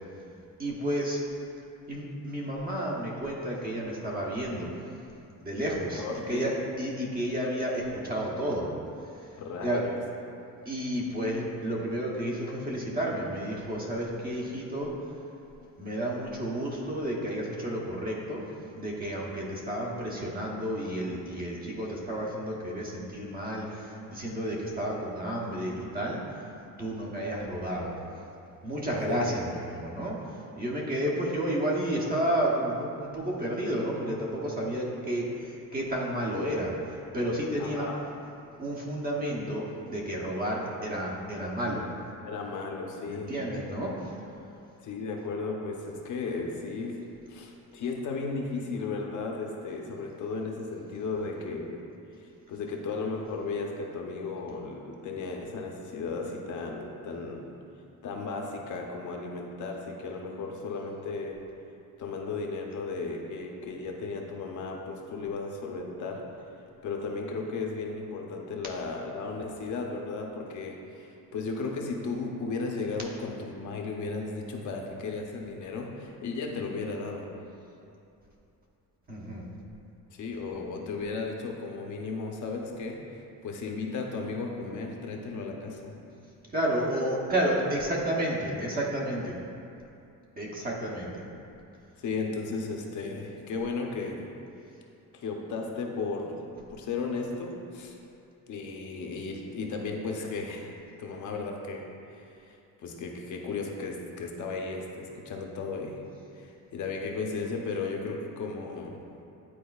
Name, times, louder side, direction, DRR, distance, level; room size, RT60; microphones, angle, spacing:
voice 1, 0.6-1.2 1.9-4.7 5.4-8.7 9.0-9.9 10.6-15.2 15.8-18.5 18.8-26.2 26.8-28.0 28.6-37.9 38.6-41.9 43.1-44.3 79.1-79.5 80.5-80.6 86.5-89.4 90.4-91.2, right 1 dB, 25° right, -3 dB, 0.8 m, -31 dB
voice 2, 6.0-6.5 9.4-10.0 29.1-29.3 37.6-38.0 42.2-43.3 44.8-47.0 47.3-51.8 52.5-57.4 58.0-61.4 62.0-66.2 66.8-77.3 80.1-86.0 92.0-94.3 95.1-96.4 96.7-98.0 98.5-100.7 101.0-106.0 106.3-109.0, left 4 dB, 55° left, 1 dB, 0.7 m, -35 dB
10.0 x 4.3 x 2.3 m, 2.7 s
cardioid pair, 170°, 35 cm